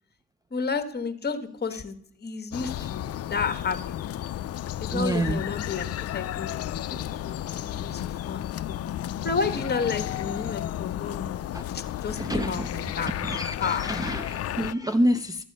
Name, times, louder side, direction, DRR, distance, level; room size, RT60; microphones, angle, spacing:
voice 1, 0.5-4.0 4.8-5.9 6.1-8.8 9.2-11.4 11.7-13.1 13.6-14.1, left 5 dB, 35° left, 9 dB, 1.4 m, -32 dB
sound 1, 2.5-14.7, left 12 dB, 55° left, 0.5 m, -33 dB
voice 2, 4.9-5.4 6.9-7.0 11.5-11.6 12.2-12.7 13.2-15.4, right 1 dB, 10° right, 9 dB, 0.5 m, -27 dB
13.0 x 8.1 x 5.4 m, 0.63 s
cardioid pair, 90°, 30 cm